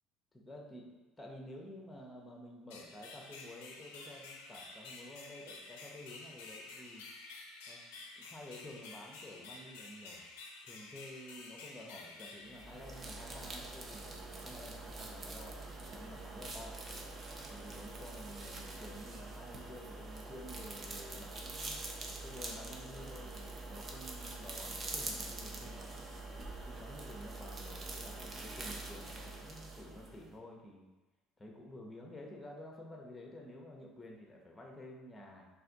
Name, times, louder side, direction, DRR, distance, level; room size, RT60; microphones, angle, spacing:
voice 1, 0.3-7.1 7.7-7.8 8.2-10.2 10.7-16.8 17.5-21.8 22.2-26.1 26.6-30.9 31.4-35.5, left 1 dB, 15° left, 0 dB, 0.7 m, -51 dB
sound 1, 2.7-13.4, left 3 dB, 65° left, 0.4 m, -51 dB
sound 2, 12.5-30.3, right 2 dB, 30° right, 0.6 m, -45 dB
3.3 x 2.6 x 3.8 m, 1.1 s
figure-of-eight pair, 60°, 0 cm